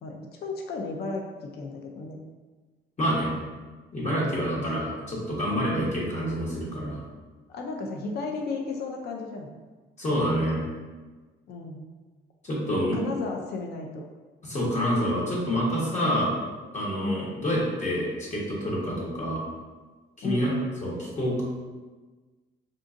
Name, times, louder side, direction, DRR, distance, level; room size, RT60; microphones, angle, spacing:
voice 1, 0.0-2.2 4.5-4.7 7.5-9.5 11.5-11.8 12.7-14.0 17.0-17.3 20.2-20.4, left 3 dB, 55° left, 1 dB, 0.4 m, -34 dB
voice 2, 3.0-3.3 3.9-7.0 10.0-10.6 12.4-13.0 14.4-16.4 16.7-19.4 20.2-20.5 20.8-21.4, equal, 35° left, -5 dB, 1.1 m, -27 dB
3.7 x 2.6 x 2.5 m, 1.3 s
cardioid pair, 90°, 20 cm